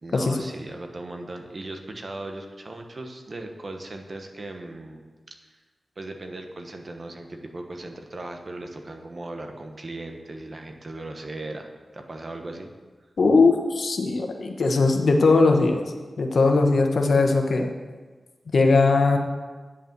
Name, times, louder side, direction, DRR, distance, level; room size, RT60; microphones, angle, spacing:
voice 1, 0.0-5.4 6.0-12.7, right 2 dB, 45° right, 4 dB, 1.2 m, -38 dB
voice 2, 13.2-15.8 16.2-17.7 18.5-19.2, left 3 dB, 80° left, 4 dB, 1.1 m, -19 dB
9.9 x 5.6 x 7.5 m, 1.4 s
wide cardioid pair, 80°, 0 cm